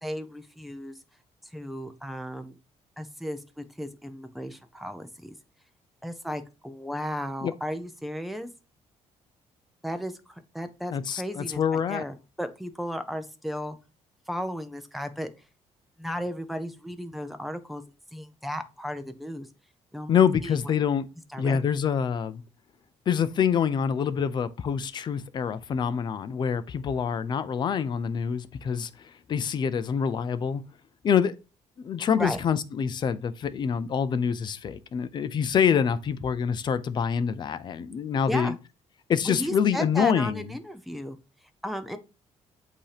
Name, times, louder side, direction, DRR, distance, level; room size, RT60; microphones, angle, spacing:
voice 1, 0.0-0.9 1.5-2.5 3.0-5.3 6.0-8.5 9.8-13.8 14.3-15.3 16.0-17.8 18.1-19.5 19.9-20.6 21.3-21.6 32.2-32.4 38.3-38.6 39.2-41.2 41.6-42.0, equal, ahead, 0.7 m, -35 dB
voice 2, 10.9-12.0 20.1-21.1 21.4-22.4 23.1-30.6 31.0-31.4 31.8-38.5 39.1-40.5, left 7 dB, 40° left, 0.6 m, -26 dB
8.2 x 2.9 x 4.9 m
cardioid pair, 155°, 12 cm